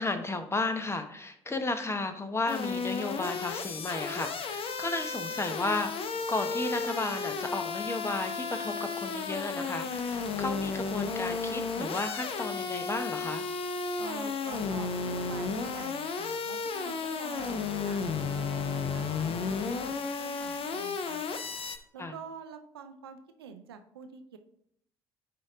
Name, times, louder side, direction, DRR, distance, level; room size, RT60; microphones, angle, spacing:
voice 1, 0.0-13.4 22.0-22.1, left 2 dB, 20° left, 8 dB, 1.0 m, -33 dB
sound 1, 2.5-21.8, left 5 dB, 50° left, 0.7 m, -33 dB
voice 2, 14.0-17.5 17.8-19.6 19.8-21.2 21.9-24.4, right 6 dB, 85° right, 7 dB, 0.5 m, -46 dB
8.5 x 2.9 x 4.9 m, 0.69 s
hypercardioid pair, 50°, 12 cm